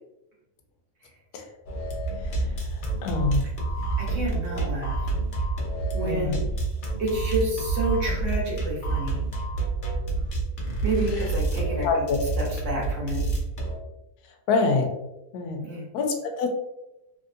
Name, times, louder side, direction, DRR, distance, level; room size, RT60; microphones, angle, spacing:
sound 1, 1.7-13.8, right 3 dB, 50° left, 0.6 m, -28 dB
voice 1, 3.0-3.4 6.0-6.4 11.8-12.2 14.5-14.9 15.3-15.6 15.9-16.5, left 4 dB, 75° left, 4 dB, 1.1 m, -25 dB
voice 2, 4.0-5.0 5.9-6.4 7.0-9.2 10.8-12.0 12.4-13.2 15.6-15.9, right 2 dB, 55° right, -3 dB, 1.3 m, -29 dB
3.4 x 2.6 x 2.5 m, 0.93 s
omnidirectional pair, 1.7 m